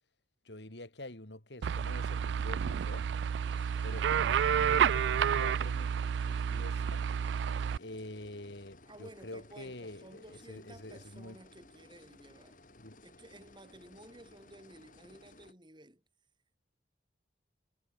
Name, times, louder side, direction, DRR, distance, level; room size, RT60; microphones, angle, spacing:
voice 1, 0.4-3.1 3.8-5.9 6.2-7.1 7.8-11.4 12.8-13.0, left 1 dB, 75° left, 4.2 m, -46 dB
sound 1, 1.6-7.8, right 8 dB, 80° right, 0.3 m, -30 dB
sound 2, 3.4-15.5, left 2 dB, 45° left, 3.0 m, -58 dB
voice 2, 3.5-4.1 8.8-12.6 13.0-16.0, right 1 dB, 25° right, 5.0 m, -54 dB
head